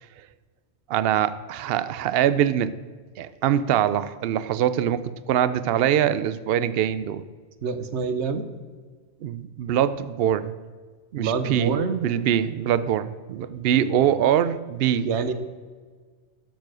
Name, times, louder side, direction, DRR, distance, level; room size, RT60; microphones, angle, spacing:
voice 1, 0.9-2.7 3.2-7.2 9.2-10.5 11.1-15.1, right 10 dB, 65° right, 14 dB, 0.8 m, -23 dB
voice 2, 7.6-8.5 11.2-12.0 13.7-14.0 15.0-15.3, right 5 dB, 85° right, 11 dB, 1.2 m, -26 dB
12.0 x 7.1 x 6.2 m, 1.5 s
omnidirectional pair, 1.1 m